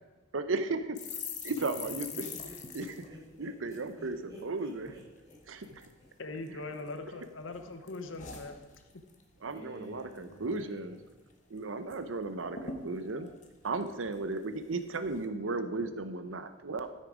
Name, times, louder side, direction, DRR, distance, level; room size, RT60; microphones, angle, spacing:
voice 1, 0.3-1.0 1.4-2.1 2.7-2.9 3.4-4.9 5.5-5.7 9.4-11.0 11.5-13.3 13.6-16.9, right 3 dB, 90° right, 9 dB, 0.7 m, -35 dB
sound 1, 0.9-4.5 4.8-5.0 5.3-5.9 6.4-7.2 7.5-9.2 9.5-9.7 10.0-10.6 10.9-11.0 11.3-12.0 12.2-12.3 12.5-14.4 14.9-15.2, left 5 dB, 40° left, 1.1 m, -45 dB
voice 2, 1.4-5.7 6.0-6.1 9.4-11.0, equal, 20° right, -4 dB, 3.8 m, -50 dB
voice 3, 6.0-8.8, left 2 dB, 85° left, 7 dB, 1.0 m, -41 dB
13.0 x 6.5 x 5.0 m, 1.2 s
head